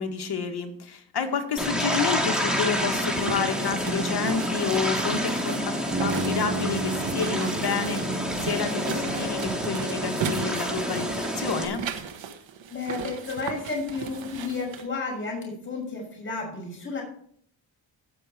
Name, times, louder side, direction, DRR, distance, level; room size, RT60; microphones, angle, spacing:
voice 1, 0.0-11.8, left 5 dB, 55° left, 4 dB, 2.2 m, -29 dB
sound 1, 1.6-11.7, equal, ahead, 3.2 m, -28 dB
sound 2, 2.6-14.9, right 7 dB, 70° right, 1.5 m, -36 dB
Bass guitar, 5.9-9.9, right 2 dB, 30° right, 1.7 m, -34 dB
voice 2, 12.7-17.0, left 4 dB, 25° left, -2 dB, 6.1 m, -32 dB
17.0 x 6.5 x 4.6 m, 0.62 s
cardioid pair, 80°, 46 cm